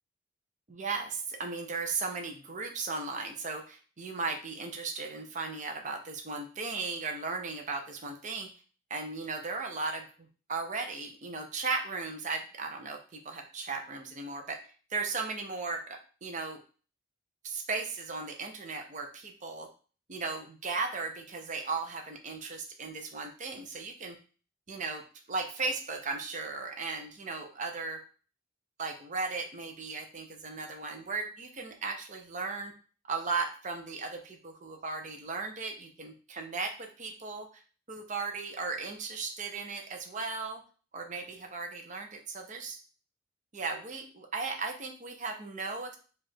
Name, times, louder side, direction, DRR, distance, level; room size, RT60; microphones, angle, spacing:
voice 1, 0.7-8.5 8.9-14.6 14.9-16.6 17.4-19.7 20.1-24.2 24.7-25.0 25.3-28.0 28.8-32.7 33.1-37.5 37.9-40.6 40.9-42.8 43.5-46.0, right 4 dB, 40° right, 4 dB, 0.6 m, -36 dB
4.7 x 2.5 x 4.3 m, 0.38 s
head